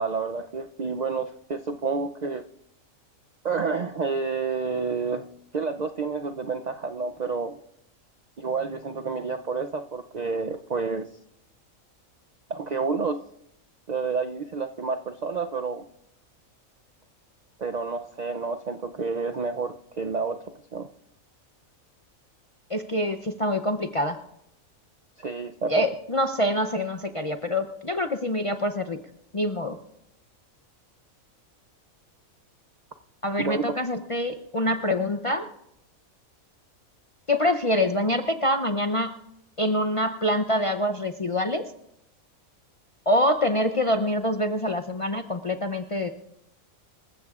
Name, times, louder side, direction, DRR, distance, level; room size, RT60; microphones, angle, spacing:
voice 1, 0.0-2.4 3.4-5.3 5.5-7.6 8.4-11.1 12.5-13.2 13.9-15.8 17.6-20.4 20.7-20.9 25.2-25.9 33.4-33.6, right 4 dB, 75° right, 7 dB, 0.4 m, -29 dB
voice 2, 22.7-24.2 25.7-29.0 29.3-29.8 33.2-35.4 37.3-39.1 39.6-41.6 43.1-46.1, left 1 dB, 45° left, 6 dB, 0.4 m, -25 dB
26.5 x 14.5 x 2.4 m, 0.79 s
omnidirectional pair, 1.5 m